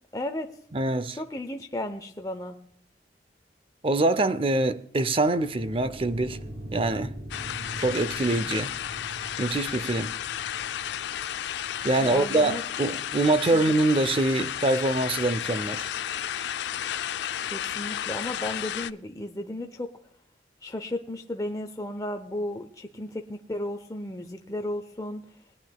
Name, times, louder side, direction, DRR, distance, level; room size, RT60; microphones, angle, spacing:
voice 1, 0.1-0.5 1.2-2.6 12.0-12.6 13.5-13.7 17.5-19.9 20.6-25.2, left 1 dB, 20° left, 0.6 m, -34 dB
voice 2, 0.7-1.2 3.8-6.4 6.7-7.1 7.8-8.7 9.4-10.1 11.8-15.9, right 2 dB, 30° right, 0.5 m, -24 dB
sound 1, 5.3-12.4, equal, 55° right, 2.6 m, -43 dB
sound 2, 7.3-18.9, left 10 dB, 75° left, 0.3 m, -33 dB
21.0 x 9.6 x 2.3 m
head